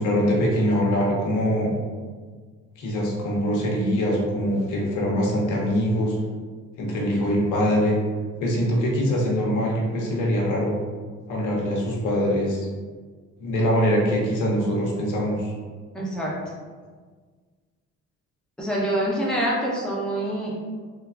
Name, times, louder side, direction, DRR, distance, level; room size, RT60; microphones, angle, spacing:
voice 1, 0.0-1.8 2.8-6.2 6.8-8.0 8.4-10.7 11.3-12.7 13.4-15.5, equal, 80° left, -2 dB, 0.7 m, -23 dB
voice 2, 15.9-16.3 18.6-20.5, right 1 dB, ahead, -5 dB, 0.7 m, -25 dB
3.1 x 2.2 x 2.3 m, 1.5 s
cardioid pair, 90°, 30 cm